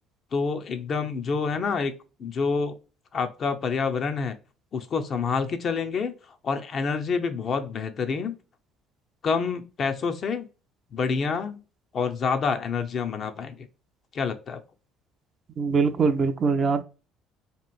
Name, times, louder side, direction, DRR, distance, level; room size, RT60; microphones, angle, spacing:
voice 1, 0.3-1.9 2.2-2.7 3.1-4.4 4.7-6.1 6.4-8.3 9.2-10.5 10.9-11.6 11.9-13.7 14.1-14.6, left 5 dB, 50° left, 0.5 m, -27 dB
voice 2, 15.6-16.8, right 4 dB, 45° right, 0.4 m, -22 dB
2.9 x 2.5 x 2.2 m
supercardioid pair, 75°, 0 cm